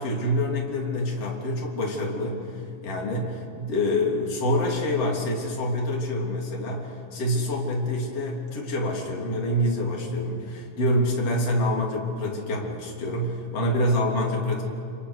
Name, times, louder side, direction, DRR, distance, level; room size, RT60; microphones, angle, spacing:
voice 1, 0.0-2.5 2.8-14.6, left 1 dB, 40° left, -1 dB, 3.9 m, -26 dB
28.0 x 26.5 x 6.5 m, 2.6 s
omnidirectional pair, 4.8 m